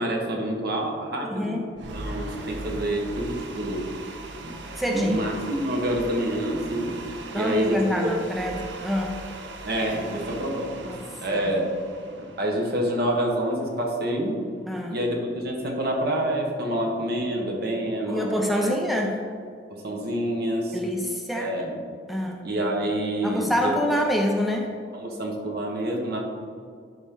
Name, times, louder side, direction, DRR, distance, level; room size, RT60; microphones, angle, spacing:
voice 1, 0.0-1.6 1.9-3.9 4.4-4.6 4.9-7.0 7.4-8.1 9.6-11.7 12.2-14.4 14.9-18.7 19.7-20.8 21.3-21.8 22.4-23.5 25.0-26.2, right 1 dB, 60° right, 0 dB, 1.3 m, -27 dB
voice 2, 1.2-1.7 4.8-5.3 7.3-9.2 10.9-11.5 14.7-14.9 18.1-19.2 20.7-21.5 22.1-22.5 23.2-24.7, equal, ahead, 1 dB, 0.5 m, -26 dB
sound 1, 1.8-13.9, right 2 dB, 85° right, 0.7 m, -39 dB
11.0 x 4.1 x 3.8 m, 2.2 s
head